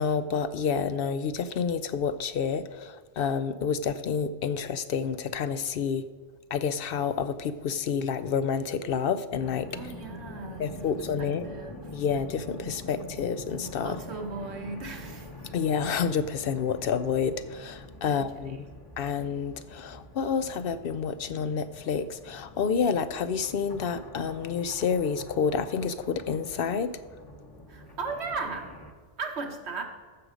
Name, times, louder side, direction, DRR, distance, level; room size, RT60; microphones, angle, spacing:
voice 1, 0.0-6.0 6.5-9.9 10.6-11.5 11.9-14.0 15.5-18.6 19.0-27.0, left 6 dB, 65° left, 13 dB, 0.7 m, -29 dB
sound 1, 9.4-28.9, left 1 dB, 20° left, 1.0 m, -45 dB
voice 2, 9.7-11.8 13.8-15.3 18.0-18.6 27.7-28.7 29.2-29.8, right 4 dB, 85° right, 4 dB, 1.6 m, -37 dB
14.5 x 6.3 x 5.1 m, 1.5 s
omnidirectional pair, 1.1 m